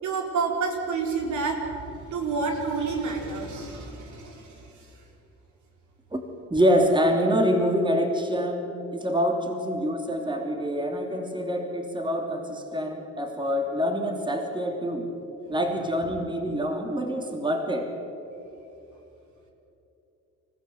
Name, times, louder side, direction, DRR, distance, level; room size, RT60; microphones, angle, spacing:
voice 1, 0.0-4.9 15.5-15.6, right 4 dB, 75° right, 1 dB, 4.2 m, -29 dB
voice 2, 6.5-15.1 15.5-17.9, equal, 15° right, 3 dB, 2.9 m, -26 dB
27.0 x 15.0 x 8.1 m, 3.0 s
cardioid pair, 90°, 30 cm